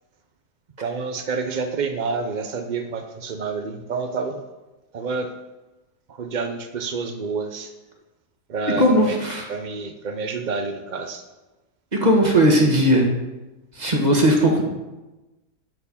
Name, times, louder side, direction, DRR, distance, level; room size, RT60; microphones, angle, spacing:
voice 1, 0.8-4.4 4.9-5.3 6.1-7.7 8.5-9.2 9.5-11.2, right 4 dB, 65° right, 6 dB, 0.4 m, -28 dB
voice 2, 8.8-9.4 11.9-13.1 13.8-14.6, equal, 25° right, 0 dB, 1.6 m, -17 dB
12.5 x 4.5 x 7.0 m, 1.1 s
omnidirectional pair, 1.8 m